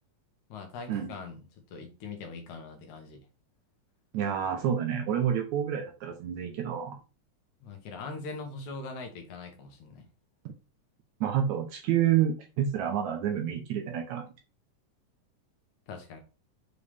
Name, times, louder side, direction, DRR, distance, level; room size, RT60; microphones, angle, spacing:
voice 1, 0.5-1.4 1.7-3.3 7.6-10.1 15.9-16.2, left 4 dB, 65° left, 4 dB, 2.4 m, -41 dB
voice 2, 4.1-7.0 11.2-14.3, right 9 dB, 70° right, 4 dB, 2.0 m, -28 dB
6.6 x 4.5 x 3.5 m, 0.31 s
omnidirectional pair, 3.8 m